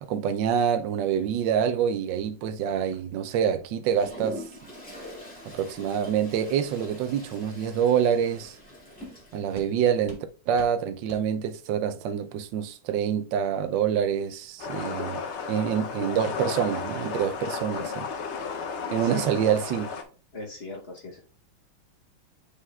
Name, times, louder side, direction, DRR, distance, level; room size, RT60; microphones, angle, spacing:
voice 1, 0.0-4.4 5.5-8.6 9.3-18.1 18.9-19.9, right 8 dB, 70° right, 1.2 m, -26 dB
sound 1, 2.9-3.0 3.4-3.6 4.0-4.2 4.6-4.7 5.1-5.2 5.6-5.8 6.3-6.4 6.8-6.9 7.4-7.5 7.9-8.1 8.5-8.6 9.0-9.1 9.5-9.7 10.0-10.2 10.5-10.7 11.1-11.2, right 1 dB, 25° right, 0.7 m, -48 dB
Toilet flush, 3.9-9.7, left 1 dB, 5° left, 2.0 m, -44 dB
sound 2, 14.6-20.0, left 5 dB, 80° left, 0.6 m, -33 dB
voice 2, 18.9-19.3 19.6-19.7 20.3-21.2, left 2 dB, 45° left, 0.9 m, -39 dB
8.4 x 5.0 x 2.3 m
omnidirectional pair, 2.2 m